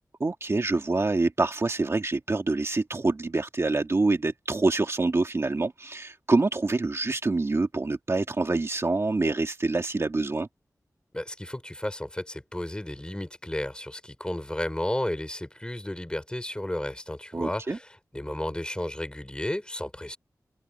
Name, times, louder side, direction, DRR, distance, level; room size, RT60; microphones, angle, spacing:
voice 1, 0.2-10.5 17.3-17.8, right 3 dB, 45° right, 2.1 m, -26 dB
voice 2, 11.1-20.2, left 1 dB, 15° left, 6.0 m, -33 dB
wide cardioid pair, 70°, 6 cm